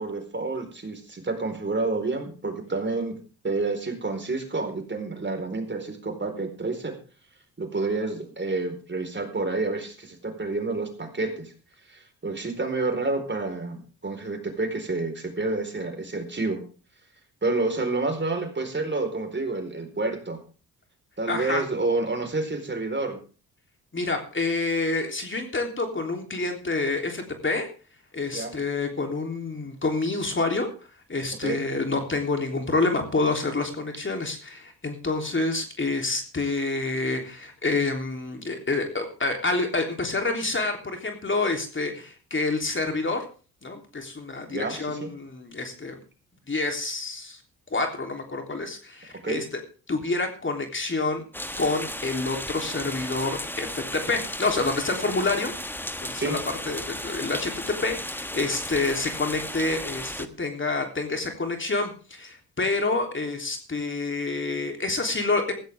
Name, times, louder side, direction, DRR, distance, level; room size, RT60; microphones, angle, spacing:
voice 1, 0.0-3.2 3.4-7.0 7.6-11.5 11.9-16.6 17.4-20.4 21.2-23.2 28.3-28.5 31.4-31.6 44.5-45.1 49.2-49.4 56.2-56.4, right 3 dB, 30° right, 6 dB, 4.3 m, -29 dB
voice 2, 21.3-21.6 23.9-27.7 28.1-30.7 31.1-43.3 43.6-46.0 46.5-47.4 47.7-49.4 49.9-51.2 51.6-55.5 56.0-56.4 56.6-57.5 57.8-65.5, left 3 dB, 30° left, 4 dB, 3.3 m, -28 dB
sound 1, 51.3-60.3, left 1 dB, 5° left, 1.2 m, -35 dB
16.0 x 14.5 x 3.5 m, 0.36 s
supercardioid pair, 65°, 38 cm